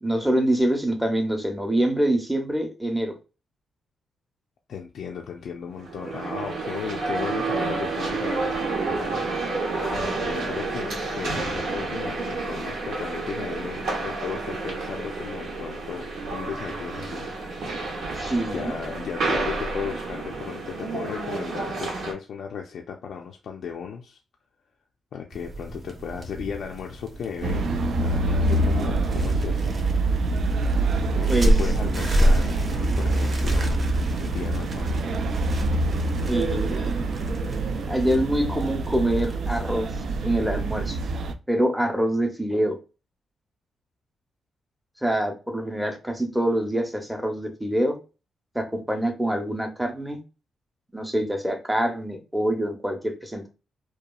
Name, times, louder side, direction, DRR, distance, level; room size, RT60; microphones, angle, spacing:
voice 1, 0.0-3.1 18.2-18.8 31.3-31.7 36.3-37.1 37.9-41.0 41.5-42.8 45.0-48.0 48.5-50.2 50.9-53.5, right 1 dB, 5° right, 0.6 m, -25 dB
voice 2, 4.7-9.1 9.7-17.3 18.3-24.2 25.1-29.8 31.1-33.8 34.2-35.0, left 7 dB, 70° left, 0.4 m, -35 dB
sound 1, 5.8-22.1, right 3 dB, 85° right, 0.8 m, -30 dB
sound 2, 25.3-39.9, equal, 45° right, 0.7 m, -30 dB
sound 3, 27.4-41.3, right 2 dB, 65° right, 0.3 m, -25 dB
2.8 x 2.3 x 2.2 m
cardioid pair, 100°, 0 cm